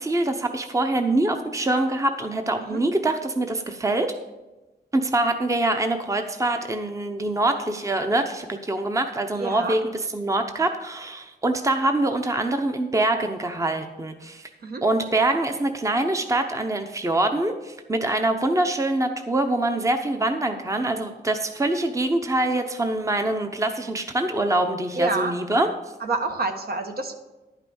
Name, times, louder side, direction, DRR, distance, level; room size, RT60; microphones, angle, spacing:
voice 1, 0.0-4.1 4.9-14.5 14.8-25.7, right 2 dB, 20° right, 6 dB, 0.8 m, -24 dB
voice 2, 9.4-9.8 14.6-14.8 24.9-25.3 26.0-27.2, right 3 dB, 60° right, 5 dB, 1.2 m, -27 dB
11.0 x 5.8 x 7.0 m, 1.1 s
wide cardioid pair, 110°, 17 cm